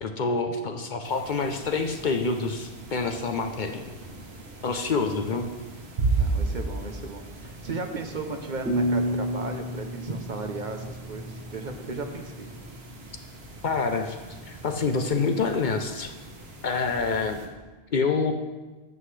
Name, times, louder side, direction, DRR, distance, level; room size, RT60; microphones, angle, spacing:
voice 1, 0.0-3.8 4.6-5.5 13.6-14.2 14.5-16.1 16.6-17.4 17.9-18.3, left 4 dB, 55° left, 5 dB, 0.8 m, -27 dB
sound 1, 1.0-17.5, right 3 dB, 75° right, 1.4 m, -36 dB
voice 2, 6.2-12.5, right 3 dB, 50° right, 5 dB, 0.9 m, -35 dB
sound 2, 8.6-11.6, equal, ahead, 1.7 m, -29 dB
12.5 x 7.8 x 3.3 m, 1.2 s
omnidirectional pair, 1.0 m